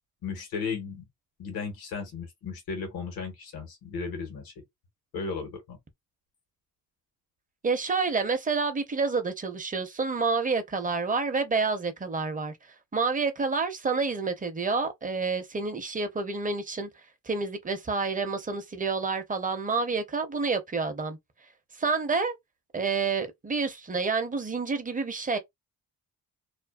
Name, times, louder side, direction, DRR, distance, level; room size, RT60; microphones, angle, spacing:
voice 1, 0.2-1.0 1.4-4.6 5.1-5.8, left 5 dB, 90° left, 1.1 m, -35 dB
voice 2, 7.6-12.5 12.9-16.9 17.2-21.2 21.8-22.3 22.7-25.4, right 4 dB, 25° right, 0.6 m, -28 dB
2.5 x 2.2 x 2.3 m
cardioid pair, 85°, 36 cm